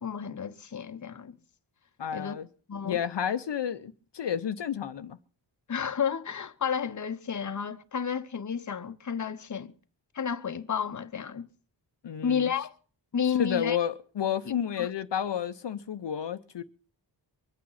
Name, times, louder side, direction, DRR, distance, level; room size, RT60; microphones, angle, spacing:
voice 1, 0.0-1.4 2.1-2.3 2.7-3.0 5.7-9.7 10.1-11.5 12.2-12.7 13.1-13.8 14.8-14.9, left 7 dB, 40° left, 0.8 m, -31 dB
voice 2, 2.0-2.5 2.8-5.2 12.0-12.5 13.4-16.6, left 9 dB, 70° left, 0.7 m, -31 dB
23.5 x 8.6 x 5.6 m
wide cardioid pair, 85°, 44 cm